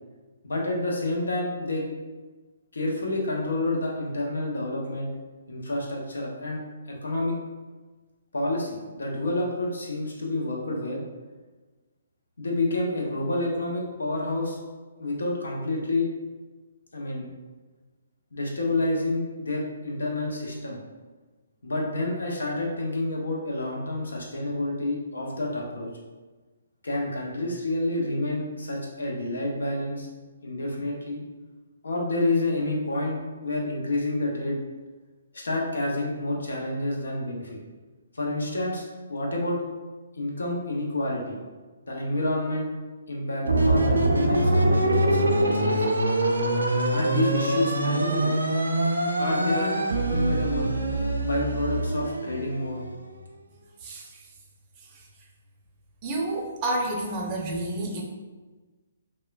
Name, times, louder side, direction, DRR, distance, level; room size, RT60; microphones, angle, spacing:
voice 1, 0.4-1.9 2.7-5.1 5.5-6.6 6.9-7.4 8.3-11.0 12.4-14.6 15.0-16.1 16.9-17.3 18.3-20.8 21.6-25.9 26.8-30.1 30.4-31.2 31.8-34.6 35.3-37.6 38.1-39.6 40.1-41.4 41.9-42.7 43.1-45.9 46.9-48.3 49.2-49.7 50.1-50.7 51.2-52.8, left 2 dB, 75° left, -1 dB, 0.6 m, -29 dB
sound 1, 43.4-53.0, right 1 dB, 90° right, 0.4 m, -24 dB
voice 2, 53.8-54.1 56.0-58.0, right 1 dB, 30° right, -1 dB, 0.5 m, -29 dB
3.0 x 2.1 x 2.3 m, 1.3 s
hypercardioid pair, 140°, 0 cm